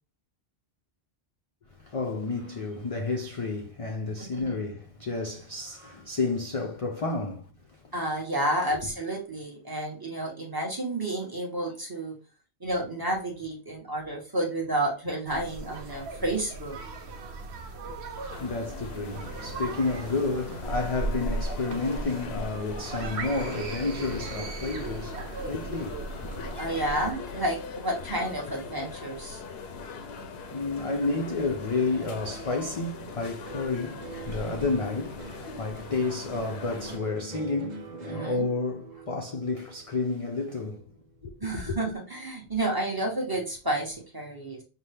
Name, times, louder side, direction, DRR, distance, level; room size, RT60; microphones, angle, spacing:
voice 1, 1.7-7.9 8.7-8.8 18.1-26.4 30.3-41.8, left 3 dB, 45° left, 0.4 m, -31 dB
voice 2, 7.9-12.1 12.6-16.9 26.6-29.4 38.1-38.5 41.4-44.6, right 1 dB, 20° right, 1.0 m, -30 dB
sound 1, 15.3-27.1, right 3 dB, 75° right, 1.0 m, -37 dB
sound 2, 18.3-37.0, left 4 dB, 75° left, 0.8 m, -41 dB
sound 3, 33.4-41.9 42.2-42.9, right 4 dB, 45° right, 0.9 m, -44 dB
5.6 x 2.2 x 3.3 m
omnidirectional pair, 1.1 m